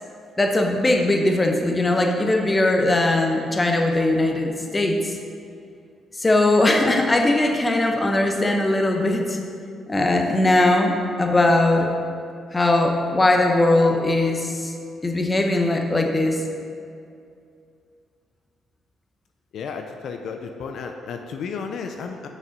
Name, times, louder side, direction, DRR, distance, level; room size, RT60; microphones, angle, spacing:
voice 1, 0.4-5.2 6.2-9.4 9.9-11.9 12.5-14.7 15.0-16.4, left 2 dB, 20° left, 3 dB, 0.9 m, -20 dB
voice 2, 19.5-22.3, left 5 dB, 70° left, 4 dB, 0.5 m, -33 dB
6.5 x 6.3 x 5.2 m, 2.4 s
cardioid pair, 90°, 0 cm